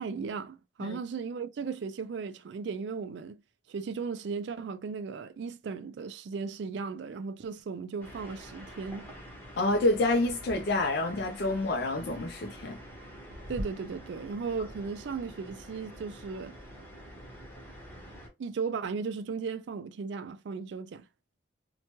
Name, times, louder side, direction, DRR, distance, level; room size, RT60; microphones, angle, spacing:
voice 1, 0.0-3.4 3.7-9.1 13.5-16.5 18.4-21.0, right 5 dB, 65° right, 0.3 m, -36 dB
sound 1, 8.0-18.3, equal, 10° left, 0.9 m, -45 dB
voice 2, 9.6-12.8, left 2 dB, 55° left, 0.4 m, -28 dB
2.9 x 2.2 x 2.9 m
head